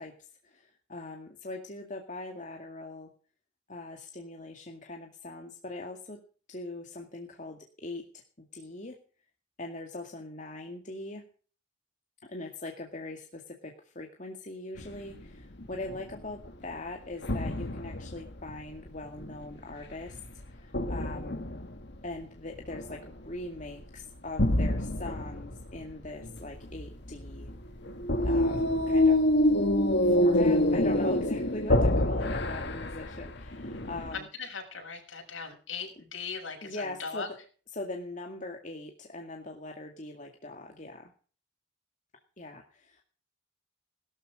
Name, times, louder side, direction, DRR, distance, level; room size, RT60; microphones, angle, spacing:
voice 1, 0.0-3.1 3.7-6.2 6.5-8.1 8.4-9.0 9.6-11.2 12.3-20.2 20.5-21.5 22.0-27.5 28.3-29.2 30.0-34.3 36.6-37.4 37.7-41.1 42.4-43.0, left 2 dB, 40° left, 2 dB, 2.2 m, -41 dB
sound 1, 14.8-15.2 15.6-16.7 17.2-19.5 20.1-22.1 22.5-23.3 23.6-24.0 24.4-34.2, left 1 dB, 60° left, 1.7 m, -27 dB
voice 2, 34.1-37.3, left 5 dB, 85° left, 2 dB, 6.6 m, -39 dB
17.5 x 13.5 x 5.0 m, 0.41 s
head